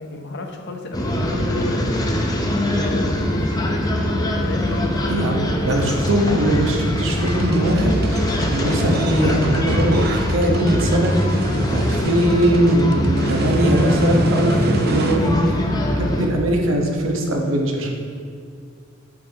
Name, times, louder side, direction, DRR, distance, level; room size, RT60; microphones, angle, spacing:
voice 1, 0.0-2.1 2.7-3.9 4.4-5.4, left 2 dB, 60° left, 4 dB, 0.8 m, -33 dB
sound 1, 0.9-16.3, left 1 dB, 20° left, 0.6 m, -22 dB
voice 2, 5.1-8.2 8.5-11.1 11.7-15.6 16.0-17.9, right 1 dB, 80° right, 1 dB, 1.1 m, -20 dB
sound 2, 7.2-15.2, right 3 dB, 50° right, 0.6 m, -29 dB
8.3 x 6.5 x 2.8 m, 2.3 s
head